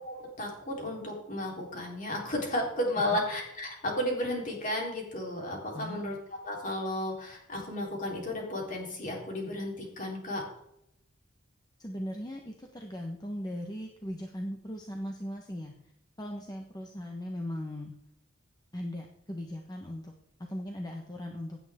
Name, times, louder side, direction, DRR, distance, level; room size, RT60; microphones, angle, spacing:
voice 1, 0.0-6.2 6.4-10.4, left 1 dB, 40° left, -1 dB, 3.8 m, -33 dB
voice 2, 5.7-6.2 11.8-15.7 16.2-18.0 18.7-20.1 20.5-21.6, equal, 20° left, 2 dB, 1.1 m, -38 dB
16.5 x 9.0 x 3.6 m, 0.78 s
head